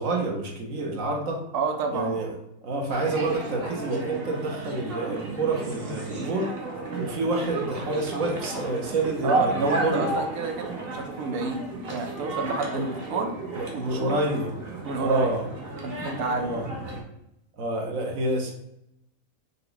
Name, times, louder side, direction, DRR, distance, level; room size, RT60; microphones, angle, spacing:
voice 1, 0.0-1.4 1.9-2.3 2.6-6.5 7.0-10.1 12.7-12.8 13.5-14.5 15.0-15.4 16.4-16.7 17.6-18.5, right 2 dB, 65° right, 1 dB, 1.2 m, -28 dB
voice 2, 1.5-2.1 6.1-6.4 9.2-13.3 13.7-14.2 14.8-15.3 15.8-16.6, right 4 dB, 85° right, 4 dB, 1.2 m, -29 dB
sound 1, 2.9-17.0, right 2 dB, 45° right, 1.1 m, -33 dB
5.8 x 2.2 x 3.9 m, 0.81 s
omnidirectional pair, 1.5 m